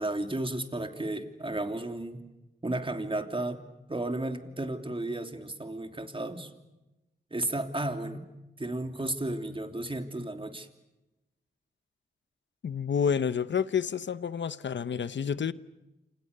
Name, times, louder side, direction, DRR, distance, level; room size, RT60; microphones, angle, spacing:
voice 1, 0.0-2.2 2.6-3.6 3.9-6.5 7.3-8.3 8.6-10.7, right 2 dB, 30° right, 3.0 m, -33 dB
voice 2, 12.6-15.5, left 7 dB, 85° left, 0.9 m, -29 dB
28.5 x 27.0 x 6.7 m
cardioid pair, 60°, 18 cm